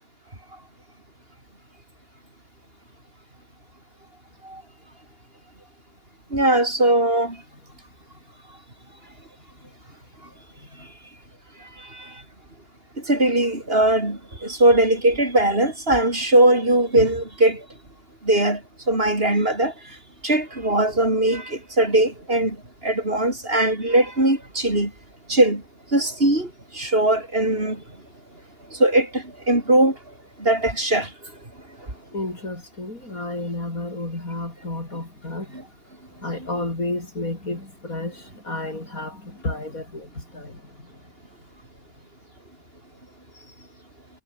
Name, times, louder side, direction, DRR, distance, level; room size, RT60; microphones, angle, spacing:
voice 1, 6.3-7.4 13.1-17.6 18.3-18.6 18.9-19.7 20.2-22.6 22.8-24.9 25.3-25.6 25.9-26.5 26.7-27.8 28.8-29.9 30.4-31.1, right 1 dB, 35° right, 5.9 m, -20 dB
voice 2, 32.1-35.6 36.2-40.9, left 2 dB, 60° left, 6.5 m, -31 dB
omnidirectional pair, 1.7 m